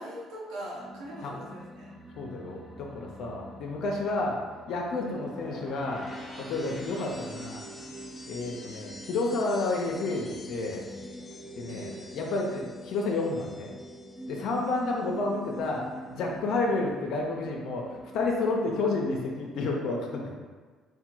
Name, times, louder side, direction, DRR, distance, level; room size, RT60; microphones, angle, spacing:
voice 1, 0.0-1.9 4.9-5.1 11.7-12.2 14.9-15.1, right 1 dB, 85° right, -5 dB, 1.2 m, -42 dB
sound 1, 0.7-19.3, equal, 10° right, 0.8 m, -45 dB
voice 2, 2.2-6.1 6.4-7.6 8.3-10.9 11.6-13.7 14.3-20.3, left 3 dB, 70° left, -1 dB, 0.6 m, -30 dB
sound 2, 4.9-15.0 15.3-15.8, left 1 dB, 20° left, 1.0 m, -48 dB
3.5 x 2.2 x 4.4 m, 1.5 s
cardioid pair, 95°, 0 cm